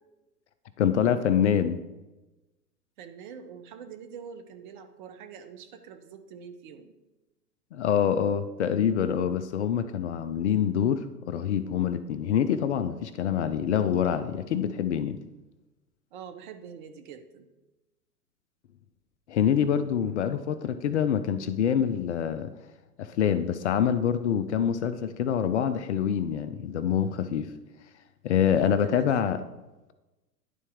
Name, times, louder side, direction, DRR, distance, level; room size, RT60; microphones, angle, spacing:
voice 1, 0.8-1.8 7.7-15.2 19.3-22.5 23.0-27.5 28.2-29.4, left 8 dB, 45° left, 11 dB, 0.5 m, -26 dB
voice 2, 3.0-6.9 16.1-17.5 28.5-29.1, right 7 dB, 30° right, 6 dB, 0.6 m, -45 dB
11.0 x 4.1 x 3.5 m, 1.1 s
figure-of-eight pair, 110°, 49 cm